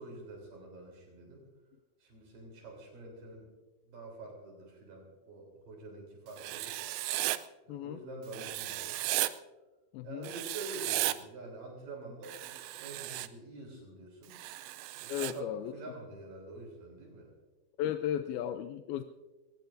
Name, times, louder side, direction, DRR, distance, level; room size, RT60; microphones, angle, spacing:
voice 1, 0.0-1.4 2.0-3.5 3.9-6.8 7.6-9.0 10.0-12.5 12.8-14.4 14.9-17.3, right 2 dB, 65° right, 0 dB, 5.2 m, -47 dB
Writing, 6.4-7.4 8.3-9.3 10.2-11.2 12.2-13.3 14.3-15.3, right 16 dB, 90° right, 2.5 m, -35 dB
voice 2, 7.7-8.0 9.9-10.3 15.1-15.7 17.8-19.0, left 11 dB, 90° left, 9 dB, 2.5 m, -35 dB
23.0 x 19.0 x 2.6 m, 1.2 s
omnidirectional pair, 4.2 m